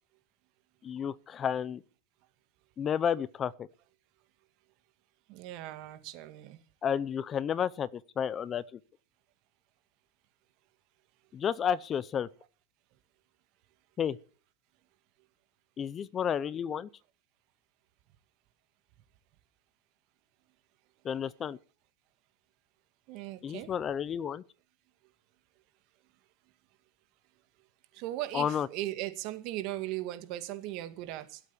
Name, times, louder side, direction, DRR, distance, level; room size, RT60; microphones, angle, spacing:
voice 1, 0.8-1.8 2.8-3.7 6.8-8.6 11.3-12.3 14.0-14.2 15.8-16.9 21.0-21.6 23.4-24.4 28.3-28.7, left 8 dB, 30° left, 0.7 m, -31 dB
voice 2, 5.3-6.6 23.1-23.7 27.9-31.4, right 15 dB, 55° right, 2.0 m, -38 dB
16.5 x 8.2 x 7.1 m
supercardioid pair, 125°, 0 cm